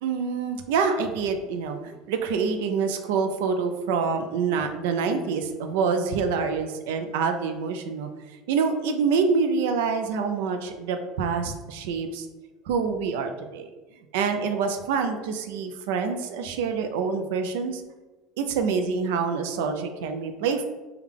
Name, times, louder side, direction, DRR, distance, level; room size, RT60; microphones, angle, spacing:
voice 1, 0.0-8.1 8.5-12.3 12.7-13.7 14.1-17.8 18.4-20.6, right 5 dB, 85° right, 6 dB, 0.3 m, -26 dB
3.5 x 2.2 x 3.4 m, 1.2 s
supercardioid pair, 125°, 0 cm